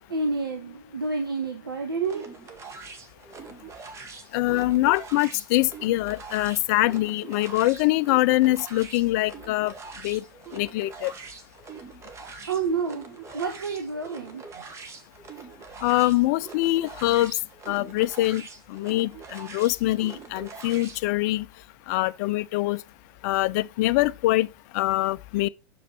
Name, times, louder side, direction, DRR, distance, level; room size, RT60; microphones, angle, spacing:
voice 1, 0.1-2.5 12.5-14.7, right 4 dB, 80° right, 1.1 m, -29 dB
sound 1, 2.0-21.0, right 4 dB, 25° right, 1.4 m, -43 dB
voice 2, 4.3-9.7 10.0-10.2 10.5-11.1 15.8-17.4 17.7-18.4 18.7-21.5 21.9-22.8 23.2-24.5 24.7-25.5, left 17 dB, 50° left, 0.4 m, -24 dB
6.8 x 5.1 x 4.3 m
figure-of-eight pair, 95°, 12 cm